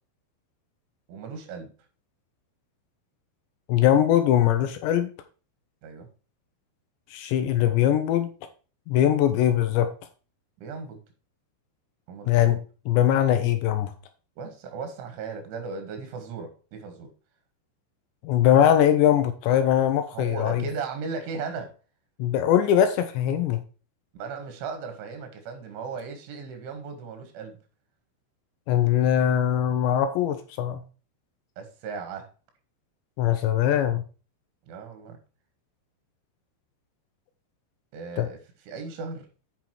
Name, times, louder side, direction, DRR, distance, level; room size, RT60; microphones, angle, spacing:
voice 1, 1.1-1.7 5.8-6.1 10.6-11.0 12.1-12.6 14.4-17.1 20.1-21.7 24.1-27.6 31.6-32.3 34.7-35.2 37.9-38.4 38.7-39.3, right 5 dB, 75° right, 6 dB, 4.3 m, -36 dB
voice 2, 3.7-5.1 7.1-8.3 8.9-9.9 12.3-12.6 12.9-13.9 18.2-20.6 22.2-23.6 28.7-30.8 33.2-34.0 38.2-38.3, left 10 dB, 80° left, 9 dB, 2.9 m, -21 dB
8.6 x 6.0 x 4.6 m, 0.35 s
omnidirectional pair, 5.6 m